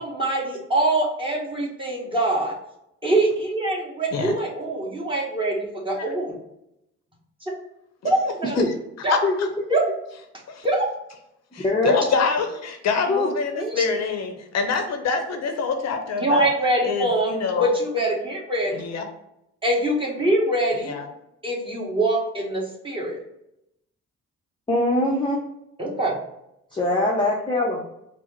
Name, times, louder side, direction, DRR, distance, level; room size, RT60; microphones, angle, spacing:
voice 1, 0.0-2.5 3.0-6.3 8.0-8.5 9.0-9.1 9.7-9.8 10.6-10.9 13.5-13.8 16.2-18.8 19.6-21.0 21.4-23.2 25.8-26.1, right 1 dB, 15° right, -4 dB, 1.4 m, -24 dB
voice 2, 9.1-9.5 10.5-10.7 11.5-16.5 16.8-17.7 18.7-19.1 20.8-21.1, left 5 dB, 60° left, 5 dB, 0.6 m, -25 dB
voice 3, 11.6-12.0 13.1-13.3 24.7-25.4 26.7-27.8, left 2 dB, 15° left, -3 dB, 0.6 m, -22 dB
4.6 x 2.0 x 4.3 m, 0.83 s
cardioid pair, 90°, 30 cm